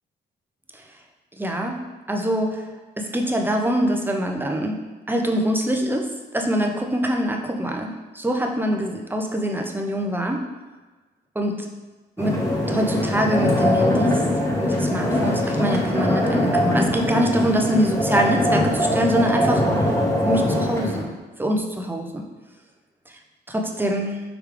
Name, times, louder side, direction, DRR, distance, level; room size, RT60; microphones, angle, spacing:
voice 1, 1.4-2.7 3.0-10.5 11.4-11.7 12.2-14.3 14.6-20.0 20.2-21.1 21.4-22.2 23.5-24.2, equal, 10° right, 3 dB, 0.6 m, -24 dB
sound 1, 12.2-21.0, left 1 dB, 15° left, 1.1 m, -22 dB
4.9 x 3.2 x 3.4 m, 1.3 s
cardioid pair, 90°, 20 cm